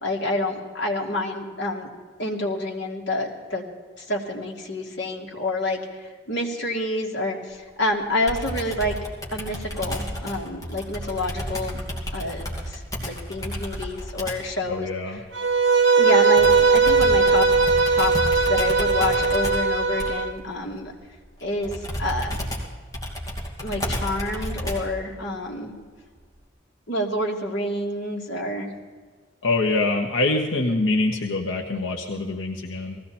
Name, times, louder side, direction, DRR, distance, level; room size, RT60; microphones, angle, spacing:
voice 1, 0.0-1.9 2.2-3.6 4.0-8.9 9.3-14.9 16.0-17.5 17.8-20.9 21.4-22.4 23.6-25.7 26.9-28.7, left 1 dB, 60° left, -1 dB, 2.5 m, -28 dB
Computer keyboard, 8.3-14.5 16.4-25.0, equal, 20° left, 2.5 m, -32 dB
voice 2, 14.7-15.2 29.4-33.0, left 2 dB, 85° left, 1 dB, 1.2 m, -24 dB
Bowed string instrument, 15.3-20.3, right 4 dB, 75° right, 1.1 m, -19 dB
19.0 x 15.5 x 4.4 m, 1.5 s
head